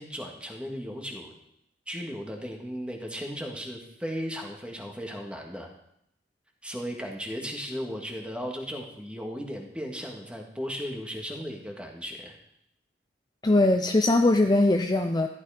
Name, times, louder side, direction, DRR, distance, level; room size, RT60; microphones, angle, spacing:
voice 1, 0.0-1.3 1.9-5.7 6.6-12.4, equal, 5° right, 2 dB, 2.1 m, -36 dB
voice 2, 13.4-15.3, left 2 dB, 20° left, 5 dB, 0.6 m, -21 dB
14.0 x 12.0 x 5.1 m, 0.76 s
head